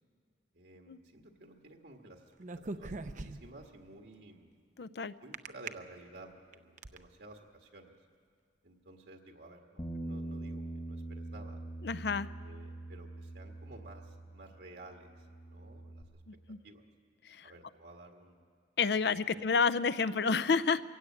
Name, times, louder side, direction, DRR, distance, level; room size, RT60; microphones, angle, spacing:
voice 1, 0.5-2.3 2.7-4.5 5.2-8.0 8.6-11.6 12.3-16.2 16.6-16.8 17.4-18.4 19.1-19.6, right 2 dB, 70° right, 2 dB, 1.7 m, -54 dB
sound 1, 2.4-3.6 5.3-5.7 6.3-7.0, right 3 dB, 45° right, 0.6 m, -40 dB
voice 2, 4.8-5.1 11.8-12.3 16.3-16.6 17.2-17.5 18.8-20.8, left 5 dB, 65° left, 15 dB, 0.5 m, -30 dB
Bass guitar, 9.8-14.6 14.8-16.0, right 1 dB, 25° left, 1.3 m, -43 dB
23.0 x 16.5 x 8.5 m, 2.1 s
head